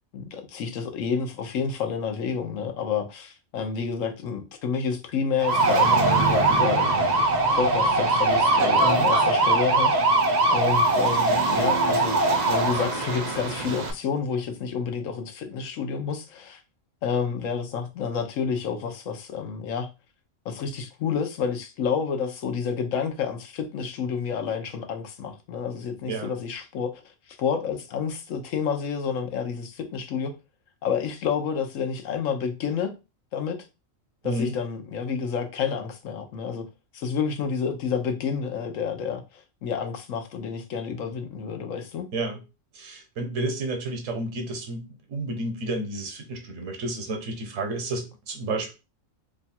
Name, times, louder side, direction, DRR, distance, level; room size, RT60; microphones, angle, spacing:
voice 1, 0.1-6.9 7.5-9.9 10.5-16.6 17.0-19.9 20.4-30.3 30.8-32.9 33.3-33.6 34.2-36.7 36.9-42.1, left 6 dB, 80° left, 1.1 m, -29 dB
sound 1, 5.4-13.9, right 2 dB, 55° right, 0.5 m, -21 dB
voice 2, 8.8-9.1 26.1-26.3 34.2-34.6 42.1-42.4 42.7-48.7, right 2 dB, 75° right, 1.2 m, -31 dB
3.0 x 2.3 x 4.2 m
omnidirectional pair, 1.3 m